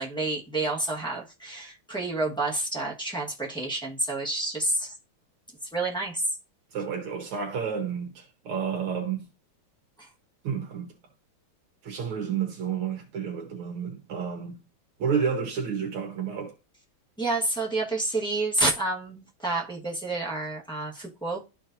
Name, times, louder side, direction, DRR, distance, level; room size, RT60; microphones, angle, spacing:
voice 1, 0.0-4.9 5.7-6.2 10.0-10.1 17.2-21.4, right 2 dB, 5° left, 0.9 m, -29 dB
voice 2, 6.7-9.2 10.4-10.9 11.8-14.6 15.0-16.5, right 7 dB, 75° right, 2.0 m, -30 dB
12.5 x 4.5 x 2.6 m
omnidirectional pair, 2.4 m